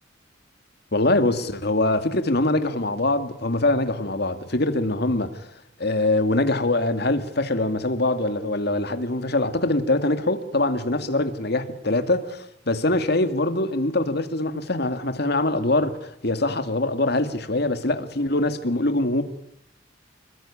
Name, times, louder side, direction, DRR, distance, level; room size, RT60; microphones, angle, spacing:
voice 1, 0.9-5.5 5.8-19.2, left 2 dB, 55° left, 2.3 m, -23 dB
26.5 x 22.0 x 10.0 m
head